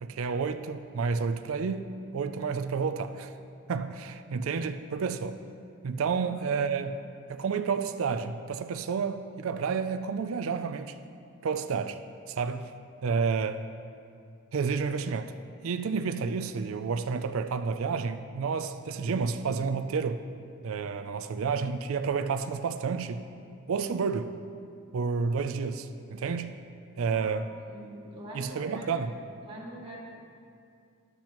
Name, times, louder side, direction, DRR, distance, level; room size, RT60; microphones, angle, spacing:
voice 1, 0.0-3.3 3.7-5.4 5.8-7.0 7.3-11.0 11.4-12.0 12.3-12.7 13.0-13.6 14.5-15.3 15.6-20.3 20.6-23.2 23.7-24.4 24.9-26.6 27.0-27.5 28.3-29.1, right 5 dB, 70° right, 9 dB, 0.4 m, -30 dB
voice 2, 6.1-6.7 27.1-27.3 27.7-28.9 29.4-30.0, right 1 dB, 25° right, -6 dB, 2.1 m, -44 dB
13.0 x 10.5 x 3.0 m, 2.4 s
head